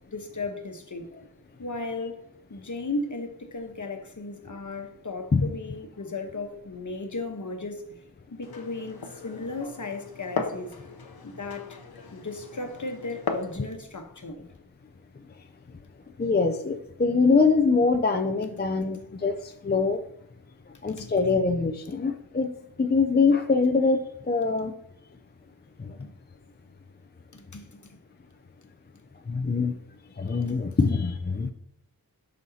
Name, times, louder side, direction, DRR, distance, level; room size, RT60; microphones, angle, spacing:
voice 1, 0.1-1.1 1.6-2.2 2.5-7.8 8.3-10.7 11.2-11.8 12.1-14.4 19.0-19.1 21.0-21.1 26.0-26.1 27.3-27.7 30.4-30.6, left 3 dB, 55° left, 1.1 m, -35 dB
Glass, 8.4-13.6, left 4 dB, 90° left, 0.9 m, -37 dB
voice 2, 16.2-20.0 20.7-22.5 22.8-24.7 25.8-26.1 29.3-29.8 30.2-31.5, left 4 dB, 30° left, 0.5 m, -24 dB
11.0 x 6.4 x 2.8 m
wide cardioid pair, 75°, 36 cm